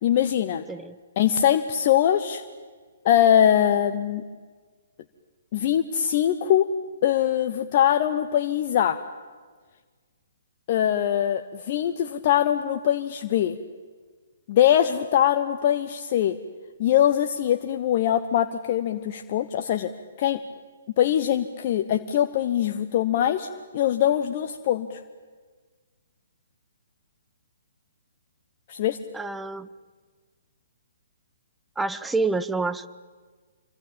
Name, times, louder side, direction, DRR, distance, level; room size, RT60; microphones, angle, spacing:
voice 1, 0.0-0.6 1.2-2.4 3.0-4.2 5.5-6.7 7.0-9.0 10.7-13.6 14.5-16.4 16.8-19.9 20.2-20.4 21.0-25.0 28.7-29.0, left 10 dB, 45° left, 7 dB, 1.1 m, -22 dB
voice 2, 29.1-29.7 31.8-32.9, right 3 dB, 5° right, 13 dB, 0.8 m, -27 dB
26.5 x 24.0 x 8.9 m, 1.5 s
figure-of-eight pair, 130°, 0 cm